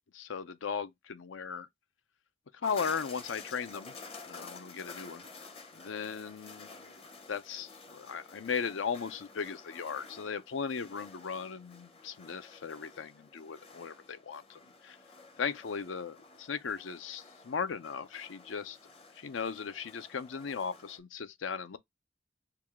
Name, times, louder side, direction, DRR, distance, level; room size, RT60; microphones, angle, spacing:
voice 1, 0.1-1.7 2.6-3.9 4.3-5.2 5.7-7.0 7.3-15.0 15.4-18.8 19.1-21.8, left 6 dB, 85° left, 0.5 m, -37 dB
sound 1, 2.6-21.0, left 4 dB, 30° left, 0.7 m, -51 dB
4.7 x 2.3 x 3.5 m
head